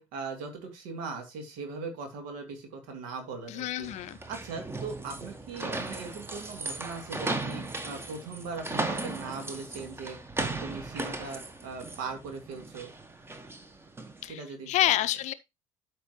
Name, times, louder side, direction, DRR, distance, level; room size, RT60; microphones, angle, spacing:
voice 1, 0.0-3.9 4.3-12.9 14.2-14.7, right 4 dB, 60° right, 2.8 m, -39 dB
voice 2, 3.5-4.2 14.2-15.3, left 14 dB, 45° left, 0.6 m, -28 dB
sound 1, 3.8-14.2, right 2 dB, 15° right, 1.3 m, -37 dB
12.5 x 4.7 x 3.1 m
figure-of-eight pair, 60°, 17 cm